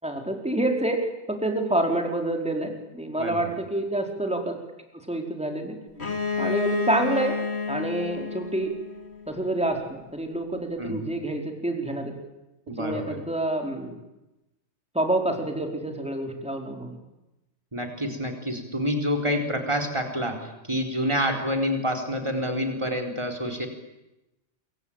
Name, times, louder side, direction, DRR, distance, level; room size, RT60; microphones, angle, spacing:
voice 1, 0.0-4.6 5.1-5.7 6.4-7.4 7.7-8.7 9.3-12.1 12.8-13.9 14.9-17.0, right 1 dB, 5° right, 3 dB, 4.3 m, -27 dB
voice 2, 3.2-3.5 10.8-11.1 12.7-13.2 17.7-23.7, equal, 25° right, 6 dB, 4.4 m, -28 dB
Bowed string instrument, 6.0-9.7, left 5 dB, 65° left, 2.7 m, -30 dB
27.5 x 23.5 x 9.0 m, 0.96 s
omnidirectional pair, 1.2 m